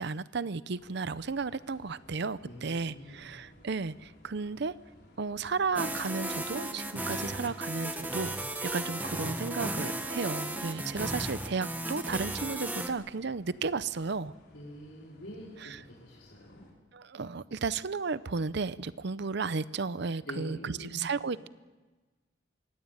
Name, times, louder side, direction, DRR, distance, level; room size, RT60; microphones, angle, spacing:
voice 1, 0.0-4.7 5.2-8.3 8.7-14.3 15.6-15.8 16.9-21.5, right 4 dB, 65° right, 16 dB, 0.7 m, -34 dB
sound 1, 0.8-16.7, left 1 dB, 60° left, 4.9 m, -58 dB
voice 2, 2.4-3.3 14.5-16.7 20.3-21.0, equal, 80° left, -6 dB, 4.6 m, -45 dB
sound 2, 5.8-12.9, right 1 dB, 10° right, 1.5 m, -35 dB
23.5 x 17.0 x 9.1 m, 1.3 s
head